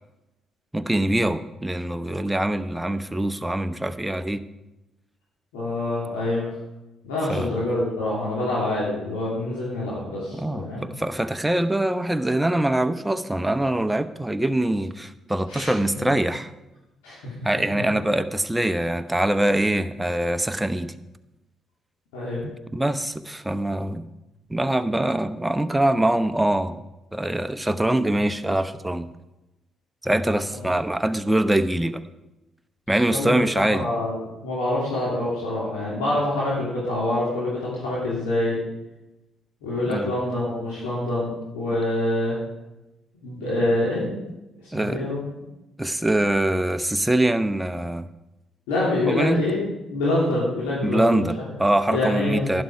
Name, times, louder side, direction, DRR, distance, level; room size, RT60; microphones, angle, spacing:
voice 1, 0.7-4.4 7.3-7.5 10.3-16.5 17.4-20.9 22.4-24.0 24.5-26.8 27.1-29.1 30.0-32.0 32.9-33.9 39.9-40.1 44.7-45.1 45.8-48.1 49.1-49.4 50.8-52.6, right 1 dB, 10° right, 10 dB, 0.8 m, -23 dB
voice 2, 5.5-6.5 7.0-10.8 15.5-15.7 17.0-17.6 22.1-22.4 30.5-30.6 32.9-38.6 39.6-42.4 43.2-44.1 44.7-45.2 48.7-49.6 49.9-51.3 51.9-52.6, left 1 dB, 80° left, -7 dB, 3.1 m, -26 dB
11.5 x 10.5 x 4.8 m, 0.98 s
hypercardioid pair, 50°, 0 cm